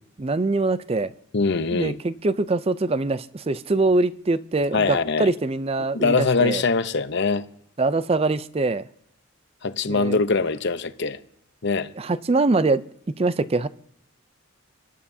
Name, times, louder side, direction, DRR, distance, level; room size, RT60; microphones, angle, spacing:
voice 1, 0.2-1.1 1.7-6.6 7.8-8.8 9.9-10.2 12.0-12.8 13.2-13.7, right 3 dB, 25° right, 0.4 m, -23 dB
voice 2, 1.3-2.0 4.7-5.3 5.9-7.4 9.6-11.2 11.6-11.9, left 4 dB, 55° left, 0.8 m, -22 dB
25.5 x 12.5 x 2.7 m
head